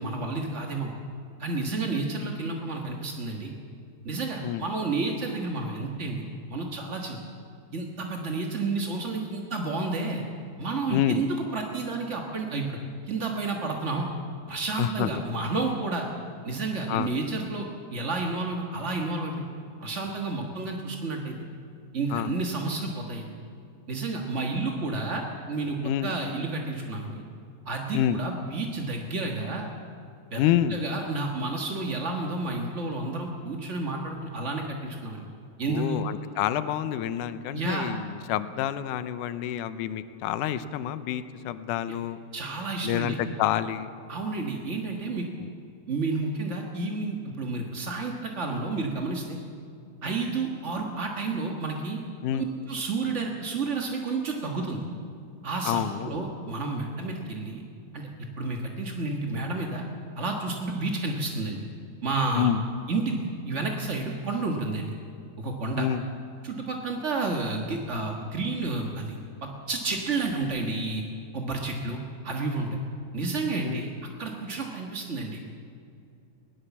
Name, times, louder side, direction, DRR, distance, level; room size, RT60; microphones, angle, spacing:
voice 1, 0.0-0.9 1.4-3.5 4.0-6.2 6.5-7.2 7.7-10.2 10.6-12.8 13.1-14.1 14.5-16.1 16.4-17.7 17.9-19.4 19.8-21.4 21.9-23.3 23.9-27.2 27.6-29.7 30.3-30.4 30.7-35.2 35.6-36.0 37.5-37.9 42.3-43.2 44.1-45.3 45.9-49.4 50.0-52.0 52.3-54.8 55.4-57.6 57.9-58.1 58.4-59.8 60.1-61.6 62.0-62.5 62.9-64.9 65.4-65.9 66.4-71.0 71.3-72.8 73.1-73.9 74.2-75.4, right 3 dB, 45° right, 1 dB, 0.8 m, -30 dB
voice 2, 10.9-11.2 14.8-15.1 16.9-17.1 22.1-22.3 25.8-26.1 27.9-28.2 30.4-30.8 35.6-42.2 42.8-43.9 45.4-45.5 52.2-52.5 55.7-56.1 62.3-62.6 65.8-66.0 73.6-73.8, left 11 dB, 80° left, 12 dB, 2.3 m, -28 dB
21.0 x 17.5 x 7.2 m, 2.4 s
omnidirectional pair, 3.7 m